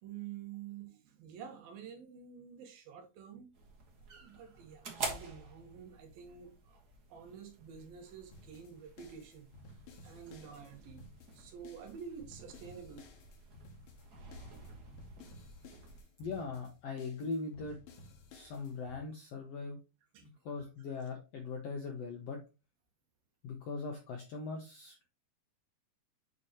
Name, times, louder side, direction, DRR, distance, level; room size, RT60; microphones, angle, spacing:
voice 1, 0.0-3.5 4.2-6.8 7.1-9.5 10.0-11.0 11.3-13.1 20.1-20.3, right 7 dB, 85° right, 3.1 m, -49 dB
sound 1, 3.5-16.0, right 3 dB, 65° right, 0.9 m, -48 dB
sound 2, 8.3-19.0, left 3 dB, 90° left, 3.3 m, -56 dB
voice 2, 16.2-17.8 18.3-19.8 20.2-22.4 23.4-25.1, left 4 dB, 70° left, 1.5 m, -40 dB
8.2 x 4.8 x 2.9 m
omnidirectional pair, 4.1 m